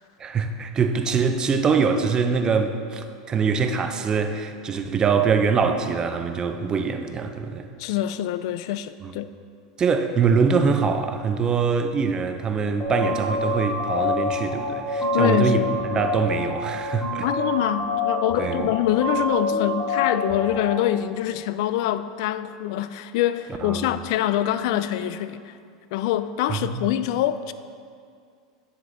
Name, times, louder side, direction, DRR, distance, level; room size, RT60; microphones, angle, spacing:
voice 1, 0.2-7.7 9.0-9.1 9.8-15.6 15.9-17.3 18.4-18.7 23.6-23.9 26.5-26.9, right 5 dB, 25° right, 7 dB, 0.6 m, -23 dB
voice 2, 7.8-9.3 15.1-16.0 17.2-25.6 25.9-27.5, left 12 dB, 65° left, 13 dB, 0.3 m, -25 dB
sound 1, 12.8-20.8, left 2 dB, 20° left, 2.0 m, -27 dB
9.1 x 6.7 x 3.8 m, 2.2 s
supercardioid pair, 115°, 3 cm